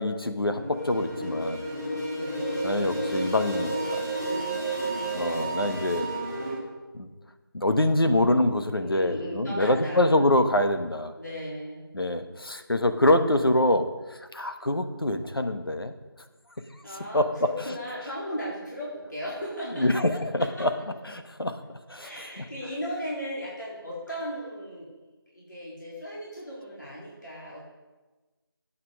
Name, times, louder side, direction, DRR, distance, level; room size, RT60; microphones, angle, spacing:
voice 1, 0.0-1.7 2.6-4.0 5.1-6.1 6.9-7.1 7.5-11.1 11.9-15.9 17.1-17.3 19.8-20.7 21.1-21.6 21.9-22.1 22.4-22.5, left 1 dB, 70° left, 7 dB, 1.2 m, -25 dB
sound 1, 0.5-6.5, right 2 dB, 5° left, 4.0 m, -31 dB
voice 2, 2.1-2.8 4.2-5.6 8.8-10.2 11.2-11.9 16.8-19.9 22.0-24.9 25.3-27.7, equal, 50° left, -7 dB, 3.8 m, -37 dB
8.8 x 8.1 x 6.4 m, 1.2 s
figure-of-eight pair, 175°, 13 cm